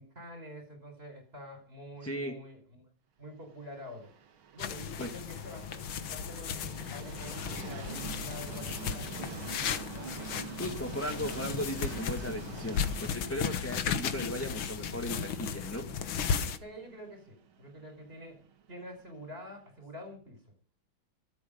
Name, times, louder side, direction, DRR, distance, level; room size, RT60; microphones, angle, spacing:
voice 1, 0.0-2.9 3.2-4.1 4.5-9.9 16.6-18.4 18.7-20.4, equal, 30° right, 5 dB, 5.3 m, -47 dB
voice 2, 2.0-2.4 5.0-5.1 10.4-15.9, equal, 5° left, 3 dB, 1.8 m, -37 dB
Train, 3.7-19.5, right 7 dB, 80° right, 2.2 m, -46 dB
sound 1, 4.6-16.6, left 7 dB, 85° left, 2.1 m, -35 dB
24.5 x 8.4 x 5.2 m, 0.40 s
omnidirectional pair, 2.2 m